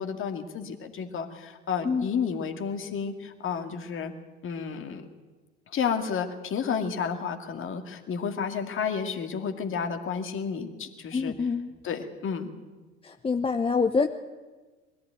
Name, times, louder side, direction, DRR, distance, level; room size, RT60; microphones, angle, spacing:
voice 1, 0.0-4.1 4.4-5.1 5.7-11.3 11.8-12.5, left 6 dB, 40° left, 6 dB, 2.2 m, -31 dB
voice 2, 11.1-11.7 13.0-14.1, left 5 dB, 15° left, 7 dB, 0.8 m, -26 dB
21.5 x 14.0 x 9.2 m, 1.3 s
figure-of-eight pair, 65°, 33 cm